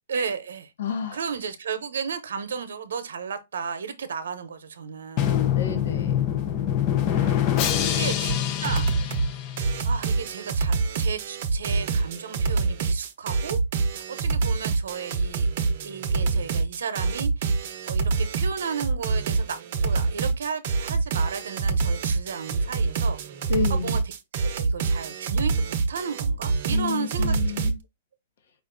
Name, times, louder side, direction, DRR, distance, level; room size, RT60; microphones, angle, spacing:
voice 1, 0.1-0.7 1.1-5.5 7.1-8.3 8.6-8.9 9.8-13.6 13.9-15.5 15.8-24.0 24.4-27.4, right 6 dB, 85° right, 0.8 m, -34 dB
voice 2, 0.8-1.2 5.5-6.3 7.4-7.9 23.5-24.0 26.7-27.8, left 6 dB, 70° left, 1.1 m, -30 dB
Drum, 5.2-10.0, left 10 dB, 35° left, 0.7 m, -25 dB
sound 1, 8.3-8.4 8.6-9.3 9.6-27.7, right 4 dB, 50° right, 0.7 m, -26 dB
5.0 x 2.4 x 3.8 m
hypercardioid pair, 150°, 0 cm